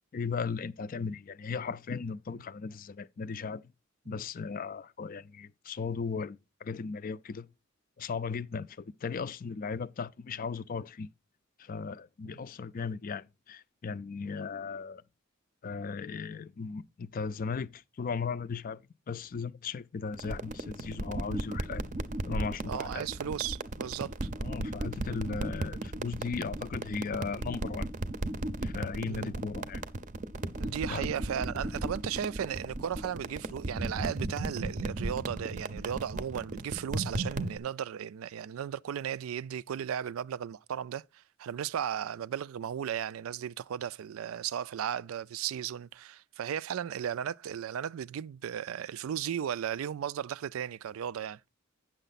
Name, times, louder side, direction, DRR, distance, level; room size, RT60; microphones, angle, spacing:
voice 1, 0.1-3.6 4.1-7.5 8.0-11.1 11.6-15.0 15.6-21.9 22.2-23.1 24.4-27.9 28.6-29.8 30.9-31.1, left 5 dB, 45° left, 0.4 m, -37 dB
sound 1, 20.1-37.6, right 2 dB, 40° right, 0.6 m, -36 dB
voice 2, 22.7-24.3 29.1-29.4 30.6-41.0 41.4-51.4, right 9 dB, 90° right, 0.4 m, -35 dB
9.1 x 6.5 x 4.0 m
head